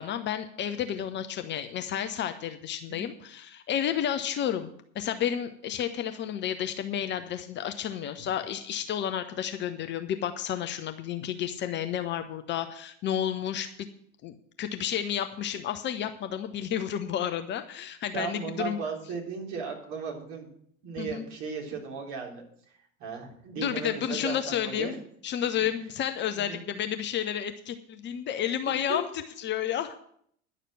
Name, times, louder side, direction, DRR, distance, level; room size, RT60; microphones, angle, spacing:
voice 1, 0.0-13.7 14.2-18.8 21.0-21.3 23.6-24.9 25.2-29.0 29.4-30.0, left 10 dB, 30° left, 9 dB, 0.8 m, -31 dB
voice 2, 18.1-20.5 20.8-22.4 23.0-25.0 26.4-26.6 28.9-29.0, right 5 dB, 45° right, 0 dB, 3.6 m, -36 dB
10.5 x 6.7 x 8.8 m, 0.66 s
figure-of-eight pair, 80°, 39 cm